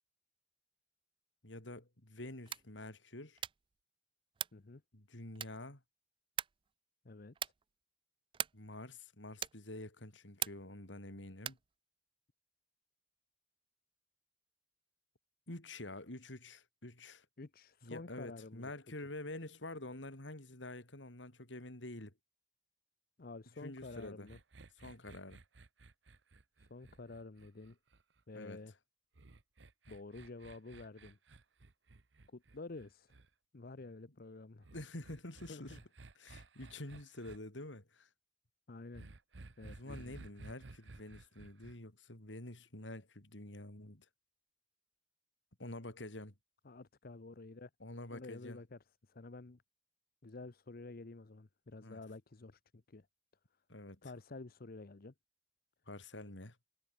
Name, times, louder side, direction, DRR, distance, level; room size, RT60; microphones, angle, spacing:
voice 1, 1.4-3.4 4.9-5.8 8.5-11.6 15.5-17.3 17.8-22.1 23.6-24.3 24.8-25.4 28.3-28.6 34.7-35.8 36.2-38.1 39.6-44.1 45.6-46.3 47.8-48.6 51.8-52.0 53.7-54.1 55.9-56.6, left 1 dB, 85° left, 3.9 m, -48 dB
sound 1, 2.4-2.8 3.4-3.7 4.3-4.7 5.4-5.8 6.4-6.7 7.3-7.7 8.3-8.7 9.4-9.7 10.4-10.8 11.4-11.7, right 9 dB, 30° right, 0.3 m, -41 dB
voice 2, 4.5-4.8 7.0-7.5 17.4-18.7 23.2-24.4 26.7-27.8 28.3-28.7 29.9-31.2 32.3-33.2 33.5-34.7 35.5-35.8 36.3-36.4 38.7-39.1 39.6-40.2 46.6-47.7 48.1-48.8 49.1-49.6 50.2-53.1 54.0-55.1, left 3 dB, 55° left, 0.8 m, -50 dB
sound 2, 23.8-28.2 29.2-33.3 34.6-37.4 38.9-41.8, right 2 dB, 75° right, 1.0 m, -55 dB
head